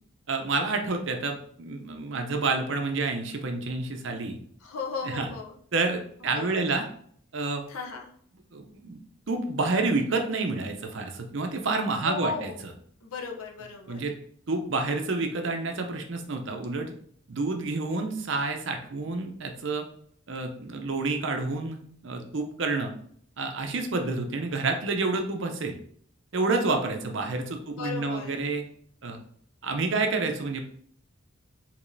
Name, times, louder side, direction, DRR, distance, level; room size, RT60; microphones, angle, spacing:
voice 1, 0.3-4.4 5.0-5.3 5.7-6.9 7.3-7.6 8.5-9.0 9.3-12.7 13.9-14.1 14.5-16.9 17.3-19.9 20.3-22.9 23.4-25.7 26.3-28.6 29.0-29.2 29.6-30.6, right 3 dB, 55° right, 4 dB, 0.6 m, -29 dB
voice 2, 4.6-5.6 6.2-6.7 7.7-8.1 12.0-12.6 13.0-14.1 27.7-28.5, left 4 dB, 80° left, 2 dB, 0.7 m, -36 dB
4.8 x 2.9 x 2.6 m, 0.62 s
head